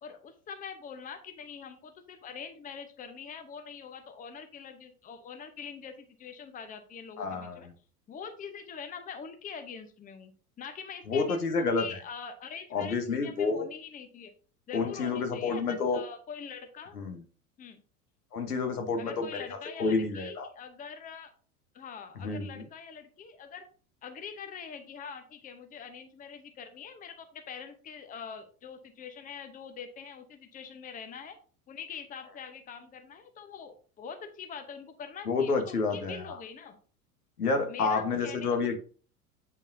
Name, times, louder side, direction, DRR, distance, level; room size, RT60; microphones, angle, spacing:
voice 1, 0.0-7.7 8.1-14.3 14.7-17.0 17.6-17.8 19.0-21.3 21.7-23.6 24.0-31.4 31.7-36.8 37.7-38.8, left 6 dB, 20° left, 7 dB, 0.9 m, -44 dB
voice 2, 7.2-7.6 11.1-11.8 12.7-13.6 14.7-16.0 16.9-17.2 18.3-19.4 19.8-20.5 22.2-22.6 35.3-36.4 37.4-38.8, left 4 dB, 75° left, 6 dB, 1.3 m, -29 dB
8.4 x 5.2 x 2.7 m, 0.40 s
figure-of-eight pair, 80°, 46 cm